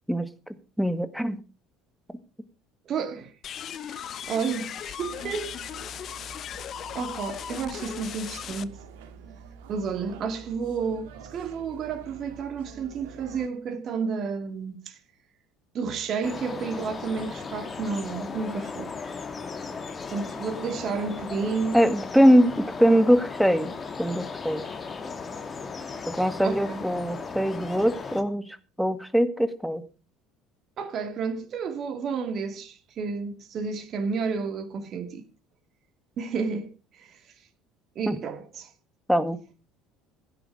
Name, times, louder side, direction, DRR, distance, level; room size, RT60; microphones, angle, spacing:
voice 1, 0.8-1.4 21.7-23.7 24.0-24.6 26.1-29.8 38.1-38.2 39.1-39.4, equal, ahead, 1.9 m, -22 dB
voice 2, 2.9-3.3 3.8-5.5 6.9-8.8 9.7-15.0 15.7-18.9 20.1-21.8 26.4-26.8 30.8-35.2 36.2-36.7 36.9-37.1 38.0-38.7, right 5 dB, 50° right, 2.5 m, -31 dB
sound 1, 3.4-8.6, left 9 dB, 50° left, 0.9 m, -37 dB
sound 2, 5.0-13.5, right 6 dB, 75° right, 2.2 m, -47 dB
sound 3, 16.2-28.2, left 4 dB, 30° left, 2.6 m, -36 dB
16.0 x 10.5 x 4.9 m
hypercardioid pair, 65°, 0 cm